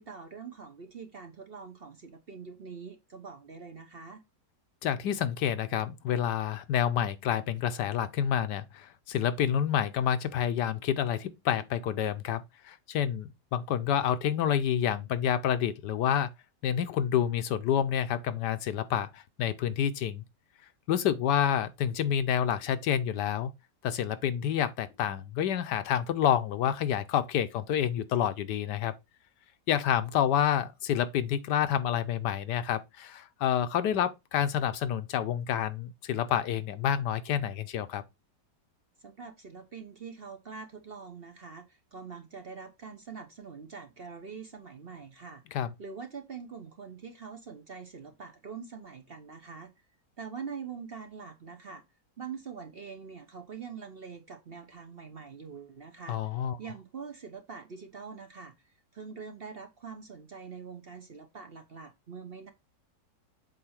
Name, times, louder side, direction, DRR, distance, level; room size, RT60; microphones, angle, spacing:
voice 1, 0.0-4.2 39.0-45.4 45.8-49.7 50.2-51.8 52.2-56.2 56.6-62.5, right 5 dB, 45° right, 0.9 m, -44 dB
voice 2, 4.8-16.3 16.6-20.2 20.9-23.5 23.8-28.9 29.7-38.0 45.5-45.7 56.1-56.6, left 9 dB, 80° left, 1.3 m, -28 dB
7.8 x 2.7 x 5.8 m
omnidirectional pair, 1.8 m